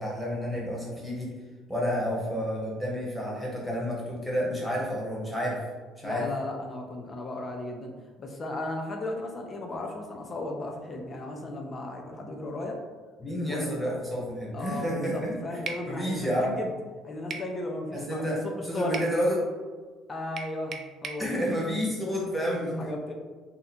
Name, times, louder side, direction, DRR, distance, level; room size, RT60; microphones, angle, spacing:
voice 1, 0.0-1.3 1.7-5.6 6.0-6.3 13.2-15.6 15.9-16.6 17.9-18.4 18.7-19.4 21.2-22.9, equal, ahead, -5 dB, 1.0 m, -30 dB
voice 2, 6.0-12.8 13.3-13.7 14.5-16.7 17.0-19.0 20.1-21.9 22.6-23.1, left 2 dB, 25° left, 2 dB, 0.5 m, -36 dB
sound 1, 15.7-15.9 17.3-17.5 18.9-19.2 20.4-21.3, right 4 dB, 40° right, 0.3 m, -37 dB
2.7 x 2.5 x 4.2 m, 1.4 s
cardioid pair, 135°, 0 cm